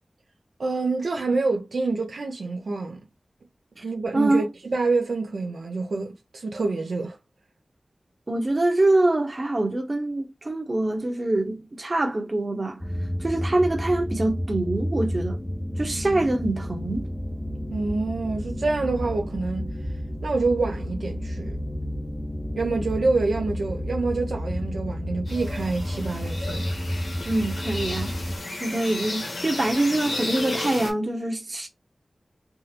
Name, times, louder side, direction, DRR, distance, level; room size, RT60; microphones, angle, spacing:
voice 1, 0.6-3.0 3.8-7.2 16.1-16.2 17.7-19.7 20.2-21.6 22.5-26.7, right 3 dB, 90° right, 0.6 m, -27 dB
voice 2, 4.1-4.4 8.3-12.8 13.2-15.4 15.8-17.1 27.2-28.1 28.6-31.7, right 2 dB, 45° right, 0.9 m, -24 dB
sound 1, 12.8-28.4, equal, 10° left, 0.6 m, -31 dB
sound 2, 25.3-30.9, left 2 dB, 90° left, 1.1 m, -33 dB
3.5 x 2.0 x 2.8 m
wide cardioid pair, 60°, 0 cm